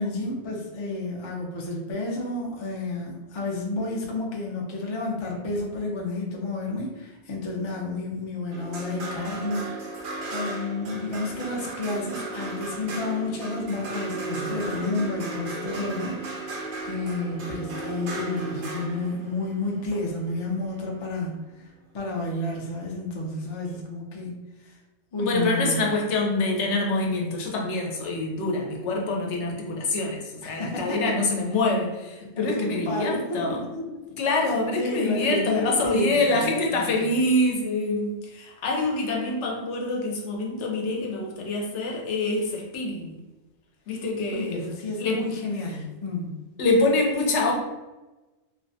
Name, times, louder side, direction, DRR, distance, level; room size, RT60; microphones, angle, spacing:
voice 1, 0.0-10.0 10.3-24.3 24.6-24.8 25.1-25.8 30.4-31.1 32.4-34.0 34.8-37.1 44.3-46.4, left 2 dB, 50° left, -1 dB, 0.3 m, -31 dB
sound 1, 8.5-20.9 22.5-22.6, right 2 dB, 60° right, 0.6 m, -35 dB
voice 2, 25.2-33.6 34.2-43.2 43.9-44.7 45.0-45.2 46.6-47.5, left 2 dB, 80° left, 0 dB, 0.9 m, -25 dB
2.5 x 2.1 x 2.6 m, 1.1 s
omnidirectional pair, 1.2 m